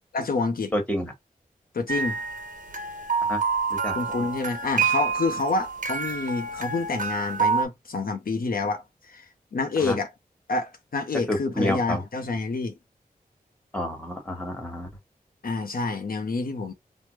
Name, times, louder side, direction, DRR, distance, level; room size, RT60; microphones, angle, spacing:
voice 1, 0.1-0.7 1.7-2.2 3.9-10.1 10.5-12.7 15.4-16.7, left 3 dB, 70° left, 0.6 m, -28 dB
voice 2, 0.7-1.1 3.3-3.4 3.7-4.0 9.8-10.0 11.3-12.0 13.7-14.9, left 1 dB, 10° left, 1.4 m, -29 dB
sound 1, 1.9-7.7, right 5 dB, 55° right, 0.7 m, -27 dB
3.3 x 2.1 x 3.1 m
wide cardioid pair, 65°, 16 cm